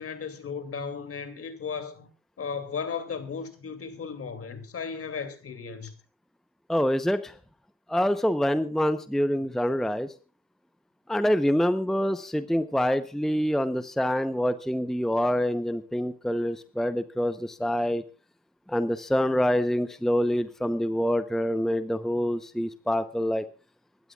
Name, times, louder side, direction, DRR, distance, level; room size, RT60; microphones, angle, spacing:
voice 1, 0.0-2.1 2.4-5.9, left 6 dB, 50° left, 2.6 m, -35 dB
voice 2, 6.7-7.4 7.9-10.1 11.1-18.0 18.7-23.4, equal, ahead, 0.8 m, -26 dB
25.5 x 12.5 x 2.4 m
cardioid pair, 90°, 30 cm